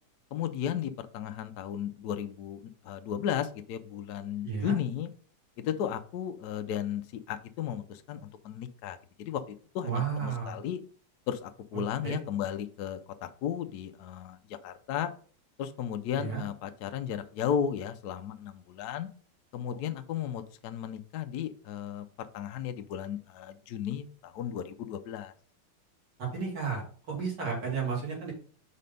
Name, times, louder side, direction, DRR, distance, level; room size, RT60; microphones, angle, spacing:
voice 1, 0.3-5.1 5.6-10.8 11.3-15.1 15.6-19.1 19.5-25.3, left 9 dB, 75° left, 8 dB, 0.9 m, -35 dB
voice 2, 4.4-4.7 9.8-10.6 11.7-12.2 16.1-16.4 19.7-19.8 26.2-28.3, right 6 dB, 55° right, -2 dB, 3.2 m, -33 dB
5.5 x 4.2 x 5.3 m, 0.43 s
omnidirectional pair, 2.4 m